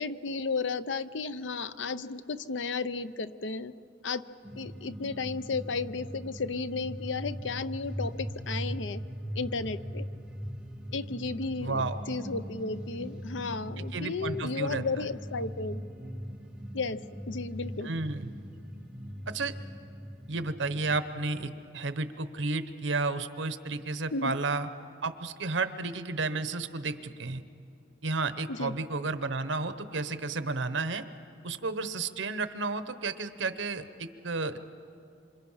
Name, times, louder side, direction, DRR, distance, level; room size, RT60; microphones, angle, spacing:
voice 1, 0.0-3.7 4.0-4.2 4.6-9.0 9.4-10.1 10.9-15.8 16.7-17.0 17.3-17.9 24.1-24.4 28.5-28.7, left 4 dB, 85° left, 14 dB, 0.7 m, -34 dB
sound 1, 4.4-21.0, equal, 5° right, 1.7 m, -40 dB
voice 2, 11.6-12.0 13.8-14.8 17.8-18.3 19.3-19.5 20.3-24.7 25.0-27.4 28.0-31.0 31.4-34.6, right 3 dB, 90° right, 12 dB, 1.0 m, -32 dB
27.0 x 26.0 x 5.7 m, 2.5 s
head